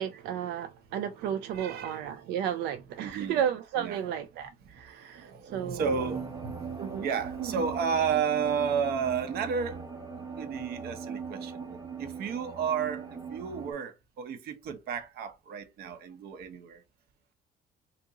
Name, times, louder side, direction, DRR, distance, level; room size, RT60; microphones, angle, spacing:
voice 1, 0.0-5.9 6.8-7.1 7.4-7.5, right 9 dB, 85° right, 0.4 m, -33 dB
voice 2, 1.5-2.1 2.8-3.4 3.7-4.0 4.6-9.9 10.1-16.8, right 6 dB, 65° right, 0.8 m, -33 dB
sound 1, 5.8-13.7, right 6 dB, 20° right, 0.8 m, -39 dB
2.9 x 2.5 x 3.6 m
cardioid pair, 110°, 17 cm